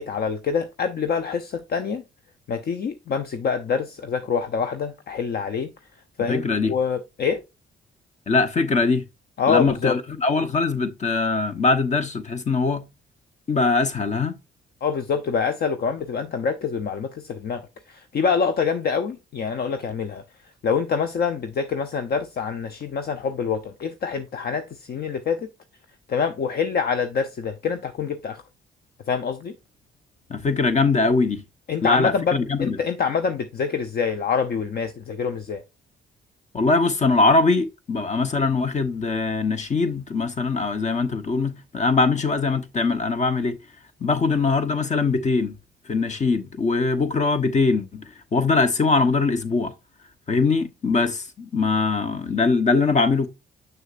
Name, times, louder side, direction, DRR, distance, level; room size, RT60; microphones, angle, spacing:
voice 1, 0.0-2.0 2.5-5.7 6.2-7.4 9.4-10.0 14.8-17.6 17.9-20.2 20.6-25.5 26.1-28.4 29.1-29.6 31.7-35.6, left 6 dB, 50° left, 0.7 m, -26 dB
voice 2, 6.3-6.7 8.3-9.0 9.5-12.8 13.5-14.4 30.3-31.4 31.8-32.8 36.5-43.6 44.0-45.6 45.9-48.0 48.3-49.7 50.3-53.3, left 3 dB, 35° left, 1.1 m, -22 dB
7.0 x 6.3 x 2.5 m
cardioid pair, 90°, 20 cm